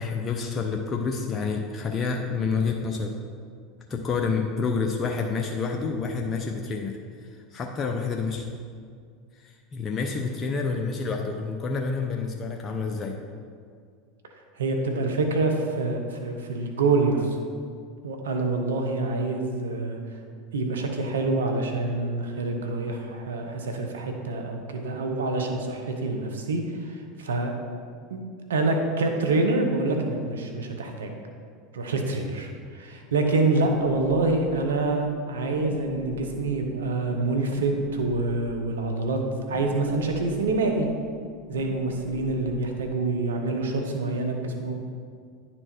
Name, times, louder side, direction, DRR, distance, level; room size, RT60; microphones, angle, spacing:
voice 1, 0.0-3.1 3.9-8.5 9.4-13.2, left 4 dB, 35° left, 2 dB, 0.7 m, -28 dB
voice 2, 14.6-17.4 18.0-20.0 20.5-27.5 28.1-28.2 28.5-31.1 31.7-39.2 39.5-40.9 41.5-44.7, right 3 dB, 90° right, 3 dB, 1.0 m, -26 dB
sound 1, 33.5-43.0, left 4 dB, 80° left, 1.3 m, -43 dB
9.9 x 4.4 x 4.4 m, 2.1 s
hypercardioid pair, 90°, 0 cm